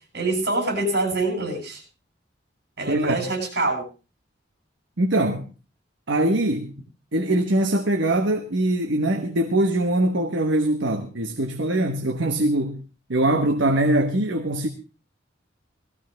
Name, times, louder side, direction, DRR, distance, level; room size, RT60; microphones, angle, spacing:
voice 1, 0.1-1.8 2.8-3.8, right 2 dB, 60° right, 7.9 m, -25 dB
voice 2, 2.9-3.2 5.0-5.5 6.1-6.7 7.1-12.8 13.1-14.7, right 1 dB, 75° right, 1.4 m, -22 dB
18.5 x 15.0 x 3.5 m
head